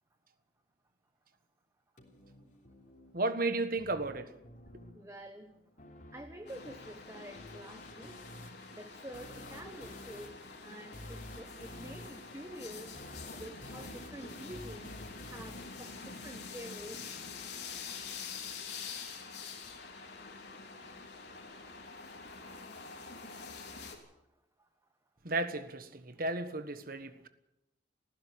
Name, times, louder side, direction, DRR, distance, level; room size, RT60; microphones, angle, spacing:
sound 1, 2.0-17.0, left 1 dB, 45° left, 3.4 m, -52 dB
voice 1, 3.1-4.3 25.2-27.3, right 2 dB, 50° right, 10 dB, 1.5 m, -34 dB
voice 2, 4.9-5.6 6.1-8.2 8.7-12.9 13.3-15.0 15.3-17.0, right 1 dB, 15° right, 5 dB, 1.2 m, -48 dB
sound 2, 6.5-24.0, left 5 dB, 65° left, 3.4 m, -46 dB
19.0 x 15.5 x 8.8 m, 0.90 s
head